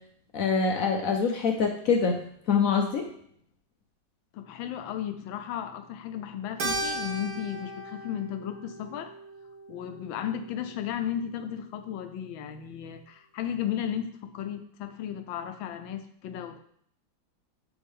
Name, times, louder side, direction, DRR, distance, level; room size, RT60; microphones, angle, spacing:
voice 1, 0.3-2.2 2.5-3.0, left 5 dB, 65° left, 3 dB, 0.9 m, -24 dB
voice 2, 4.3-9.1 9.7-16.6, left 9 dB, 80° left, 8 dB, 1.4 m, -34 dB
Keyboard (musical), 6.6-11.2, right 2 dB, 60° right, 1.4 m, -37 dB
10.5 x 3.5 x 3.6 m, 0.65 s
omnidirectional pair, 2.1 m